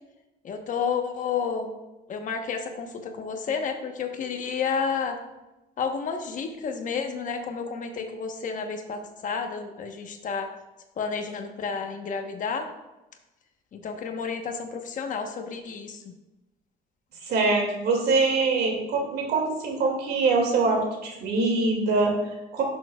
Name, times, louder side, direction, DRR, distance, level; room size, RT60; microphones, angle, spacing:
voice 1, 0.4-1.7 2.1-5.2 5.8-10.5 11.0-12.7 13.7-16.1, left 6 dB, 50° left, 5 dB, 1.1 m, -31 dB
voice 2, 17.2-22.6, right 3 dB, 70° right, 1 dB, 2.3 m, -24 dB
11.5 x 6.5 x 2.4 m, 1.0 s
cardioid pair, 110°, 17 cm